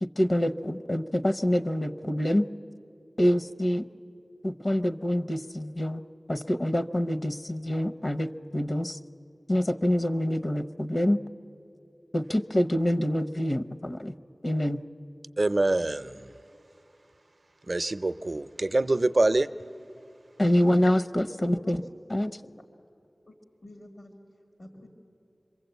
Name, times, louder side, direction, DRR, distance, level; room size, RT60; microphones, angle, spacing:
voice 1, 0.0-2.5 3.2-3.9 4.4-6.0 6.3-9.0 9.5-11.2 12.1-14.1 14.4-14.8 20.4-21.8 22.1-22.3, left 1 dB, 50° left, 10 dB, 0.7 m, -26 dB
voice 2, 15.4-16.3 17.7-19.5, right 2 dB, 55° right, 13 dB, 0.6 m, -25 dB
voice 3, 21.3-21.8 22.3-22.5 23.3-23.4 23.6-24.2 24.6-24.9, left 1 dB, 85° left, 2 dB, 1.9 m, -49 dB
26.0 x 23.5 x 8.1 m, 2.6 s
wide cardioid pair, 55°, 0 cm